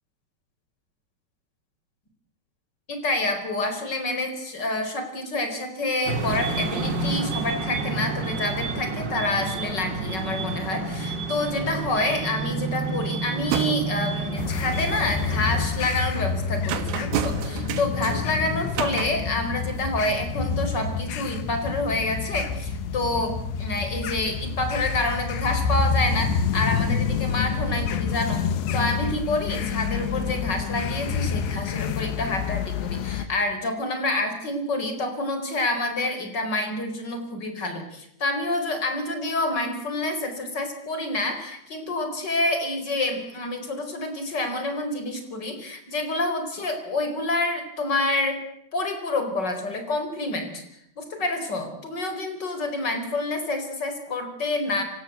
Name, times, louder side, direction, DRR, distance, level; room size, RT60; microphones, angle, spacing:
voice 1, 2.9-28.4 28.7-48.4 48.7-50.6 51.0-54.8, left 2 dB, 25° left, 6 dB, 4.7 m, -28 dB
sound 1, 6.1-15.7, right 3 dB, 35° right, 2.3 m, -30 dB
sound 2, 11.4-11.7 12.0-12.5 12.8-14.0 14.6-15.4 15.8-19.9, right 10 dB, 70° right, 3.0 m, -32 dB
sound 3, 14.4-33.3, left 6 dB, 85° left, 4.0 m, -28 dB
27.5 x 24.5 x 8.2 m, 0.77 s
omnidirectional pair, 4.9 m